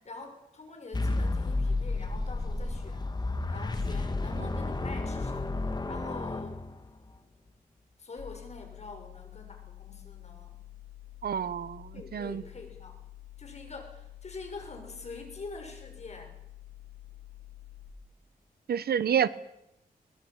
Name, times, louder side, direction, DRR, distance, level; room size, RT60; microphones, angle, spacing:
voice 1, 0.0-3.0 3.5-5.5 5.9-6.6 8.0-10.7 11.9-13.0 13.4-16.4, left 3 dB, 45° left, 4 dB, 6.5 m, -45 dB
sound 1, 0.9-7.1, left 2 dB, 25° left, 2.1 m, -31 dB
sound 2, 8.2-17.9, left 13 dB, 70° left, 5.1 m, -49 dB
voice 2, 11.2-12.4 18.7-19.3, right 8 dB, 85° right, 16 dB, 1.1 m, -28 dB
23.0 x 20.5 x 8.9 m, 0.86 s
wide cardioid pair, 105°, 16 cm